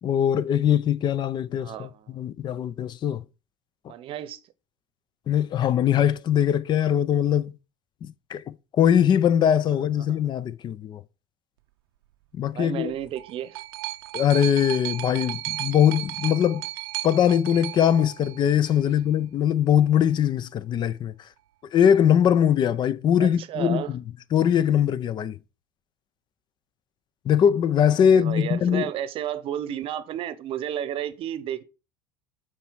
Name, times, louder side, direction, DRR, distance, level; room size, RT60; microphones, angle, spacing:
voice 1, 0.0-3.2 5.3-7.5 8.0-11.0 12.3-12.9 14.1-16.6 17.0-21.1 21.7-24.0 24.3-25.4 27.3-28.9, left 9 dB, 40° left, 0.5 m, -21 dB
voice 2, 1.6-2.2 3.9-4.4 10.0-10.2 12.5-13.6 18.9-19.0 23.2-23.9 28.1-31.6, right 11 dB, 50° right, 0.8 m, -32 dB
sound 1, 12.9-18.9 19.8-19.9, right 16 dB, 90° right, 0.6 m, -35 dB
7.4 x 4.4 x 4.7 m
supercardioid pair, 100°, 12 cm